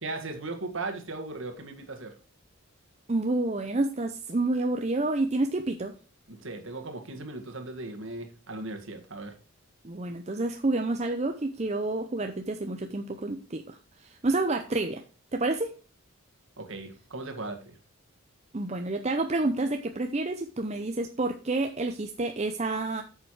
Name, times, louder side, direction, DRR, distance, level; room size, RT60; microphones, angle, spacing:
voice 1, 0.0-2.2 6.3-9.3 16.6-17.8, right 2 dB, 60° right, 5 dB, 1.8 m, -37 dB
voice 2, 3.1-5.9 9.8-15.0 15.3-15.7 18.5-23.0, right 2 dB, 30° right, 5 dB, 0.6 m, -29 dB
8.8 x 6.8 x 4.8 m, 0.36 s
head